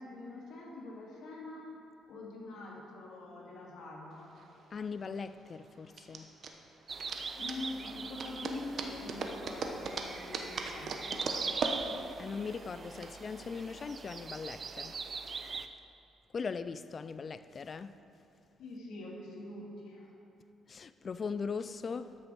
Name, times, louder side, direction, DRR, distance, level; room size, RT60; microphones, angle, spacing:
voice 1, 0.0-1.7 2.1-4.3 7.3-11.7 18.6-20.1, left 2 dB, 75° left, 2.3 m, -44 dB
sound 1, 4.2-13.1, right 4 dB, 60° right, 0.9 m, -39 dB
voice 2, 4.7-6.3 12.2-15.0 16.3-17.9 20.7-22.2, left 5 dB, 40° left, 0.3 m, -39 dB
sound 2, 6.9-15.7, right 5 dB, 40° right, 0.5 m, -42 dB
13.0 x 6.4 x 4.6 m
cardioid pair, 90°, 0 cm